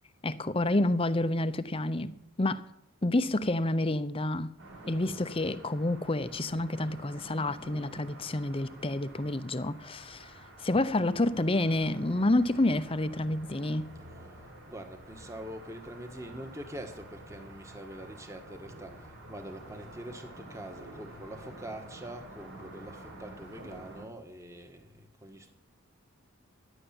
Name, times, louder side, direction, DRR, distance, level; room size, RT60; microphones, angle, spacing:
voice 1, 0.2-2.1 2.4-2.6 3.0-4.5 4.9-13.9, left 1 dB, 25° left, 0.7 m, -29 dB
sound 1, 4.6-24.1, right 1 dB, 65° right, 5.0 m, -49 dB
voice 2, 14.7-25.5, right 1 dB, 15° right, 1.5 m, -44 dB
14.5 x 11.0 x 8.9 m
head